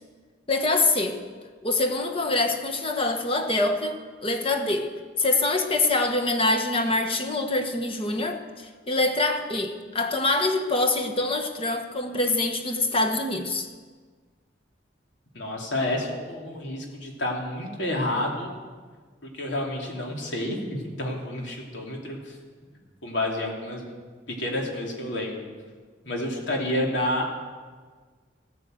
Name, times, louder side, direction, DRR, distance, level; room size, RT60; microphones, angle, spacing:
voice 1, 0.5-1.2 1.6-13.7, left 2 dB, 30° left, 5 dB, 1.2 m, -25 dB
voice 2, 15.3-18.5 19.2-22.4 23.0-23.8 24.3-25.5 26.0-27.4, left 1 dB, 80° left, 0 dB, 3.0 m, -29 dB
15.0 x 9.6 x 7.8 m, 1.5 s
head